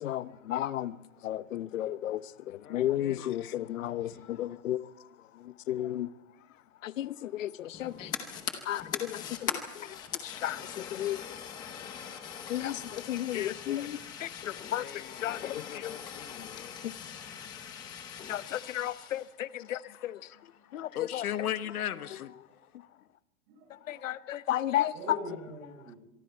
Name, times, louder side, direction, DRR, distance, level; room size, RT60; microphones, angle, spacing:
voice 1, 0.0-0.9 1.2-2.2 2.7-4.8 5.7-6.1 6.8-8.1 8.7-9.2 10.2-11.2 12.5-14.3 14.7-14.8 15.2-15.9 18.3-20.2 20.7-21.2 23.9-25.2, left 12 dB, 60° left, 1.0 m, -33 dB
voice 2, 2.6-3.6 4.4-4.5 14.5-16.8 19.8-20.0 20.3-20.4 20.9-22.3, left 11 dB, 80° left, 1.6 m, -38 dB
voice 3, 3.8-4.2 7.1-7.3 7.7-8.1 9.2-9.4 12.6-12.7 13.2-13.3 20.3-20.5 21.5-21.6 23.5-24.2 24.9-26.0, right 2 dB, 35° right, 7.5 m, -47 dB
Fire, 7.7-19.3, left 8 dB, 10° left, 0.8 m, -41 dB
25.5 x 23.5 x 4.5 m
supercardioid pair, 175°, 43 cm